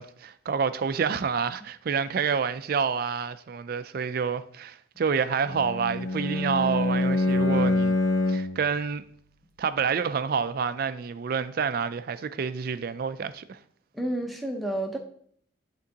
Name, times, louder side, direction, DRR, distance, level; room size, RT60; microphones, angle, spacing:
voice 1, 0.0-7.9 8.3-9.0 9.6-13.6, right 6 dB, 50° right, 0.3 m, -28 dB
Bowed string instrument, 5.5-8.6, left 2 dB, 70° left, 1.1 m, -25 dB
voice 2, 13.9-15.0, right 1 dB, ahead, 0.7 m, -30 dB
11.0 x 3.7 x 2.8 m
head